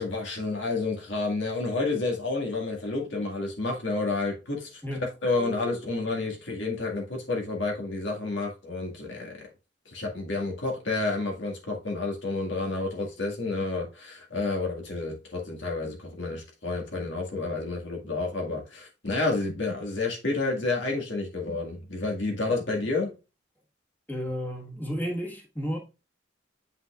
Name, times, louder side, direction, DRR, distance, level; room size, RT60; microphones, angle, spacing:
voice 1, 0.0-9.5 9.9-23.1, left 3 dB, 70° left, 1.9 m, -30 dB
voice 2, 24.1-25.8, equal, 10° left, 1.5 m, -32 dB
8.1 x 5.6 x 2.4 m
head